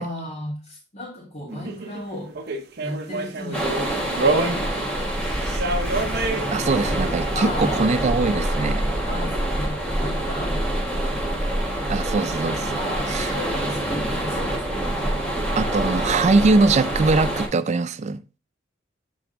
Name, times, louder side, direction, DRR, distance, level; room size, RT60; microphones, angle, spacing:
voice 1, 0.0-2.4 2.8-6.1 6.5-6.9 7.3-7.9 9.1-11.8 12.3-15.2, left 1 dB, 35° left, 1.8 m, -36 dB
sound 1, 1.5-4.9 5.3-6.5 10.0-10.1, right 3 dB, 55° right, 0.8 m, -27 dB
sound 2, 3.5-17.5, right 1 dB, 5° left, 1.3 m, -26 dB
voice 2, 6.5-8.8 11.9-12.8 13.1-13.3 15.6-18.2, right 3 dB, 35° right, 0.4 m, -21 dB
7.6 x 3.4 x 3.8 m
head